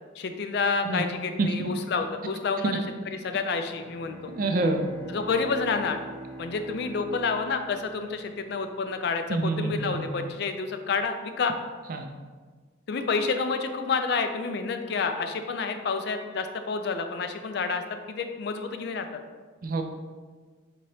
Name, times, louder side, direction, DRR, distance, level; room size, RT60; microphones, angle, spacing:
voice 1, 0.2-2.8 3.2-4.3 5.1-6.0 6.4-11.5 12.9-19.1, left 4 dB, 55° left, 7 dB, 0.3 m, -29 dB
Bowed string instrument, 3.7-8.6, right 2 dB, 5° left, 0.8 m, -43 dB
voice 2, 4.4-4.8 9.3-10.1 11.9-12.1 19.6-19.8, right 2 dB, 45° right, 5 dB, 0.3 m, -26 dB
5.2 x 2.8 x 3.1 m, 1.4 s
head